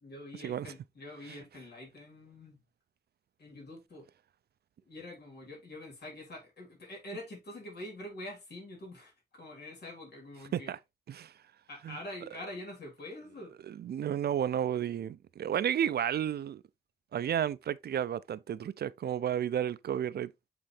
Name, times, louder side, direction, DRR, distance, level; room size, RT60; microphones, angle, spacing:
voice 1, 0.0-2.6 3.4-4.1 4.8-10.7 11.7-13.5, left 1 dB, 75° left, 3.6 m, -45 dB
voice 2, 13.7-16.6 17.1-20.3, right 10 dB, 75° right, 0.4 m, -32 dB
7.5 x 3.9 x 3.3 m
wide cardioid pair, 175°, 17 cm